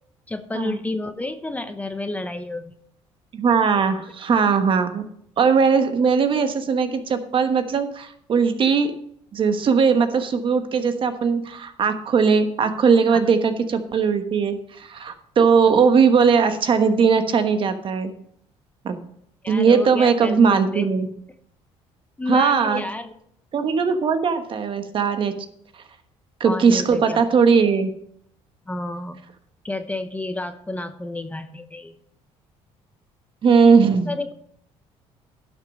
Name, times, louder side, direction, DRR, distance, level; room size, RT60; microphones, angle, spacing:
voice 1, 0.3-2.7 4.3-4.4 13.1-13.2 19.4-20.8 22.2-23.1 26.4-27.3 28.7-29.2 29.6-32.0 34.1-34.3, left 2 dB, 10° left, 9 dB, 0.9 m, -30 dB
voice 2, 3.3-5.0 5.4-8.9 9.3-18.1 18.8-19.0 19.5-21.1 22.3-22.8 23.5-25.3 26.4-27.9 33.4-34.1, right 5 dB, 45° right, 8 dB, 1.2 m, -19 dB
12.0 x 6.2 x 5.4 m, 0.68 s
cardioid pair, 100°, 12 cm